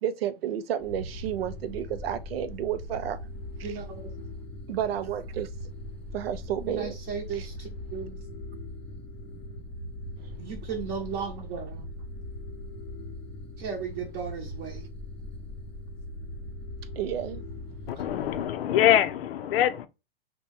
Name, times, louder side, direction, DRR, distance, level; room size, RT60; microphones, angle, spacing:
voice 1, 0.0-3.2 3.6-3.8 4.7-5.5 6.1-7.0 7.3-7.5 17.0-17.4, right 10 dB, 90° right, 0.5 m, -31 dB
sound 1, 0.8-18.5, left 1 dB, 5° left, 0.4 m, -40 dB
voice 2, 3.6-4.1 6.7-8.2 10.4-11.9 13.6-14.9 17.9-18.0, right 6 dB, 35° right, 0.7 m, -36 dB
voice 3, 17.9-19.9, left 11 dB, 80° left, 0.5 m, -24 dB
2.9 x 2.1 x 3.1 m
hypercardioid pair, 130°, 29 cm